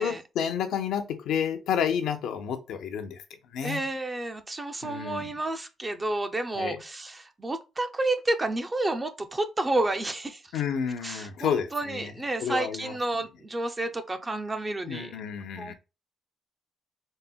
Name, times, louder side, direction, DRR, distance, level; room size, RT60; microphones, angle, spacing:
voice 1, 0.0-3.2 3.5-3.9 4.8-5.3 6.6-6.8 10.5-12.1 12.4-12.9 14.9-15.7, left 8 dB, 85° left, 0.5 m, -30 dB
voice 2, 3.6-10.5 11.0-15.2 15.6-15.7, right 2 dB, 15° right, 0.3 m, -30 dB
3.8 x 2.0 x 2.2 m
cardioid pair, 155°, 0 cm